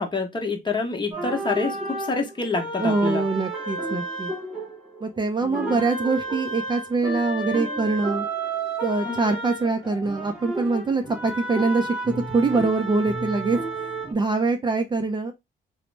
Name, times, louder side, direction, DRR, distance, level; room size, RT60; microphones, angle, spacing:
voice 1, 0.0-3.2 5.4-5.8, left 4 dB, 25° left, 0.8 m, -27 dB
sound 1, 1.1-5.2 5.5-14.1, right 2 dB, 5° right, 0.9 m, -31 dB
voice 2, 2.8-4.3 5.0-8.3 8.8-13.6 14.1-15.3, right 3 dB, 25° right, 0.4 m, -24 dB
2.9 x 2.0 x 3.2 m
cardioid pair, 90°, 20 cm